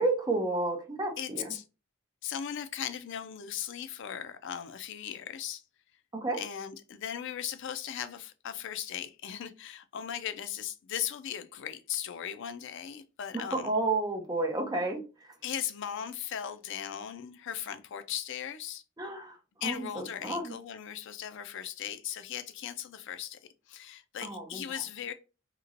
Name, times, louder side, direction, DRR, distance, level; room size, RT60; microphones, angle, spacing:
voice 1, 0.0-1.5 6.1-6.4 13.3-15.0 19.0-20.5 24.2-24.7, right 2 dB, 20° right, 0.7 m, -31 dB
voice 2, 1.2-1.6 2.2-5.6 6.3-13.7 15.4-18.8 19.6-23.4 23.7-25.1, left 9 dB, 65° left, 0.4 m, -38 dB
2.9 x 2.9 x 2.5 m
head